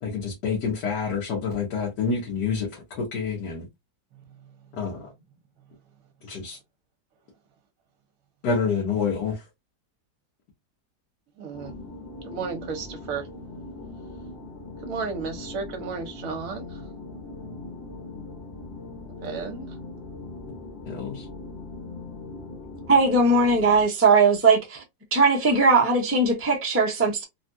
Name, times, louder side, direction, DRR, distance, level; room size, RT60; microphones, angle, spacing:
voice 1, 0.0-3.7 4.7-5.1 6.2-6.6 8.4-9.4 20.9-21.3, left 5 dB, 75° left, 1.6 m, -28 dB
voice 2, 11.4-11.7 12.2-13.3 14.8-16.8 19.2-19.7, right 5 dB, 60° right, 1.1 m, -33 dB
sound 1, 11.5-23.8, left 2 dB, 40° left, 1.3 m, -40 dB
voice 3, 22.9-24.8 25.1-27.2, right 3 dB, 15° right, 0.4 m, -19 dB
3.4 x 2.3 x 2.6 m
omnidirectional pair, 1.8 m